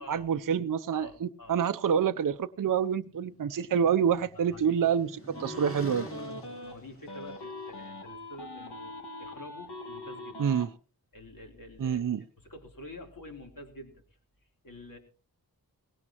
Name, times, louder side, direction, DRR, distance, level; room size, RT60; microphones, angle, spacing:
voice 1, 0.0-6.1 10.4-10.7 11.8-12.2, right 7 dB, 55° right, 0.6 m, -27 dB
voice 2, 0.9-1.6 4.3-4.8 6.6-10.4 11.1-12.0 12.4-14.0 14.6-15.0, left 1 dB, 55° left, 3.5 m, -48 dB
sound 1, 3.1-7.8, right 1 dB, 35° left, 3.0 m, -48 dB
sound 2, 5.3-6.7 7.1-10.7, left 2 dB, 90° left, 1.9 m, -42 dB
19.0 x 17.0 x 2.9 m
cardioid pair, 50°, 39 cm